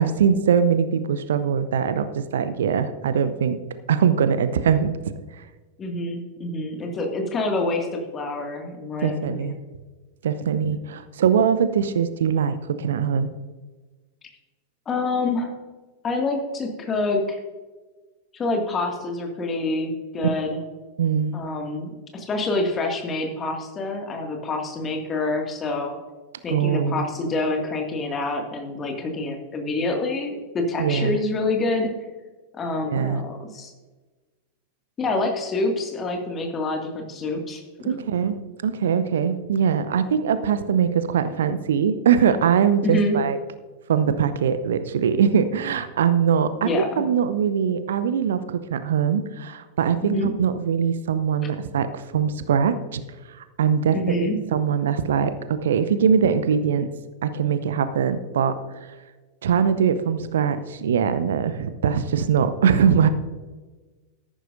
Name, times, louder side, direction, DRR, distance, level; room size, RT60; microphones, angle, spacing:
voice 1, 0.0-3.6 3.9-5.0 5.3-5.4 9.0-9.6 10.2-13.3 21.0-21.4 26.5-27.1 30.8-31.2 32.9-33.2 37.9-43.4 43.9-53.0 53.4-56.9 57.2-58.5 58.8-59.0 59.4-63.1, right 7 dB, 60° right, 12 dB, 0.7 m, -22 dB
voice 2, 5.8-9.5 14.9-15.5 16.0-17.4 18.3-20.6 21.3-26.0 26.4-31.9 32.5-33.7 35.0-37.6 42.8-43.2 46.6-47.0 50.0-50.3 53.9-54.4, left 2 dB, 25° left, 2 dB, 2.1 m, -26 dB
13.5 x 11.5 x 2.6 m, 1.3 s
figure-of-eight pair, 90°, 0 cm